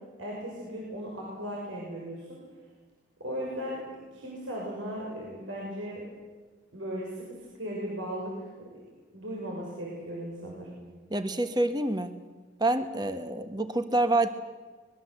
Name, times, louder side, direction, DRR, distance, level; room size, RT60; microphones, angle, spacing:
voice 1, 0.2-2.4 3.2-3.8 4.1-6.0 6.7-7.2 7.6-8.8 9.1-10.8, equal, 85° right, -3 dB, 6.4 m, -37 dB
voice 2, 11.1-12.1 12.6-14.3, right 2 dB, 20° right, 9 dB, 1.3 m, -27 dB
25.0 x 21.5 x 8.0 m, 1.4 s
head